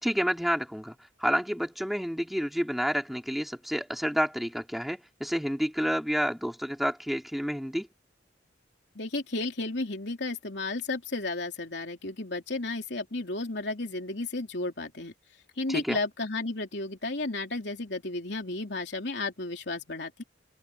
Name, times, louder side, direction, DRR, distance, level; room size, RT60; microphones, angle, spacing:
voice 1, 0.0-7.9 15.7-16.0, equal, ahead, 3.4 m, -29 dB
voice 2, 9.0-15.1 15.6-20.2, left 2 dB, 65° left, 3.6 m, -33 dB
open air
head